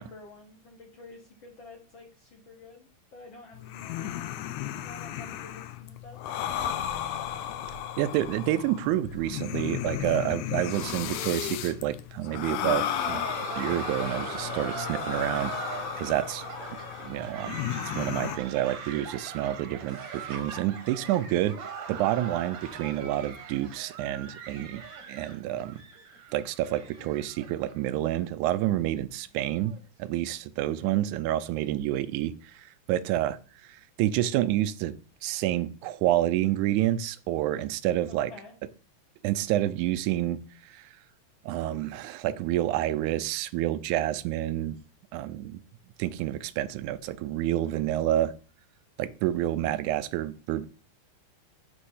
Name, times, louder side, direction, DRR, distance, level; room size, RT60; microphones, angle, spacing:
voice 1, 0.0-4.4 4.8-6.5 30.6-31.0 38.1-38.5, left 2 dB, 65° left, 2 dB, 1.3 m, -50 dB
sound 1, 3.5-18.4, left 11 dB, 80° left, 1.9 m, -34 dB
voice 2, 8.0-16.4 17.0-17.6 17.9-24.8 25.1-25.8 26.3-29.7 30.0-33.4 34.0-34.9 35.2-38.3 39.2-40.9 41.5-44.8 45.1-45.6 46.0-48.3 49.0-50.6, right 13 dB, 90° right, 14 dB, 2.0 m, -28 dB
Laughter, 12.4-28.0 28.2-28.3 28.9-29.1 29.6-29.8 30.9-31.0, right 6 dB, 60° right, 1.3 m, -41 dB
8.3 x 3.5 x 5.5 m, 0.36 s
omnidirectional pair, 3.4 m